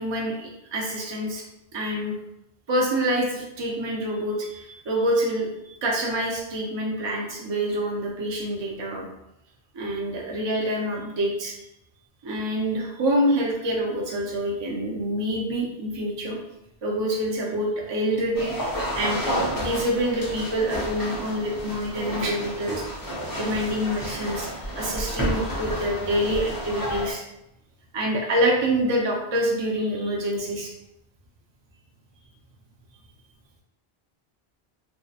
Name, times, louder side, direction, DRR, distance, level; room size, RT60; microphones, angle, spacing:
voice 1, 0.0-1.4 1.7-2.2 2.7-9.0 9.7-11.5 12.2-16.4 16.8-22.8 23.3-27.2 27.9-30.7, equal, 40° right, -2 dB, 0.4 m, -26 dB
sound 1, 18.3-27.1, equal, 30° left, 0.4 m, -31 dB
2.7 x 2.1 x 2.3 m, 0.85 s
omnidirectional pair, 1.1 m